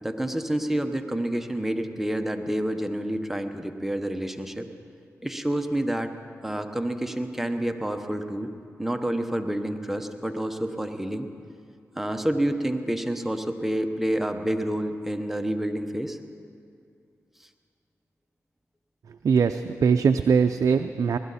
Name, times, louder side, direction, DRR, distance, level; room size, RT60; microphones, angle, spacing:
voice 1, 0.0-4.7 5.2-6.1 6.4-8.5 8.8-11.3 11.9-16.2, right 1 dB, 5° right, 6 dB, 1.0 m, -28 dB
voice 2, 19.2-21.2, right 6 dB, 65° right, 7 dB, 0.4 m, -21 dB
19.5 x 12.5 x 4.2 m, 2.4 s
cardioid pair, 50°, 6 cm